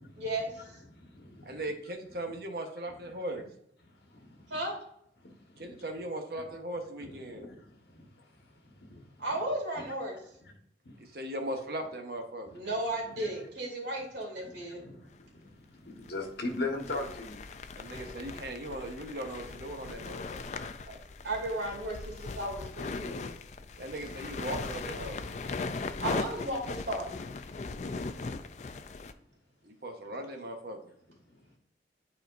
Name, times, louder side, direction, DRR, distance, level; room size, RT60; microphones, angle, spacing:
voice 1, 0.2-0.5 4.5-4.8 9.2-10.2 12.5-14.8 20.9-21.0 21.2-23.3 26.0-27.1, right 1 dB, 85° right, -1 dB, 2.5 m, -34 dB
voice 2, 0.9-1.6 3.8-4.6 5.2-5.8 7.0-9.3 9.8-9.9 10.8-10.9 13.2-13.3 14.4-17.4 28.8-28.9 31.3-31.4, left 2 dB, 70° left, 1 dB, 1.4 m, -41 dB
voice 3, 1.4-3.4 5.6-7.5 11.0-12.6 17.8-20.4 23.8-25.2 29.6-30.9, right 1 dB, 60° right, 3 dB, 1.0 m, -38 dB
sound 1, 15.1-15.2 16.0-29.1, left 4 dB, 40° left, 0.4 m, -39 dB
9.4 x 4.2 x 2.5 m, 0.70 s
head